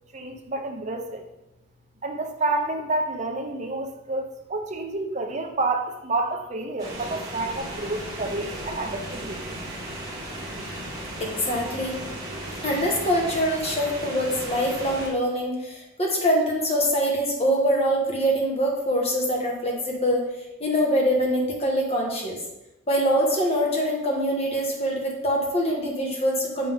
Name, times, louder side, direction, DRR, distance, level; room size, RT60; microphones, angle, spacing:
voice 1, 0.1-1.2 2.0-9.6, right 2 dB, 30° right, 4 dB, 0.7 m, -29 dB
sound 1, 6.8-15.1, right 1 dB, 15° right, 1.5 m, -35 dB
voice 2, 11.2-12.0 12.6-20.3 20.6-22.4 22.9-26.7, equal, 30° left, -1 dB, 1.3 m, -24 dB
6.5 x 5.5 x 3.6 m, 0.93 s
head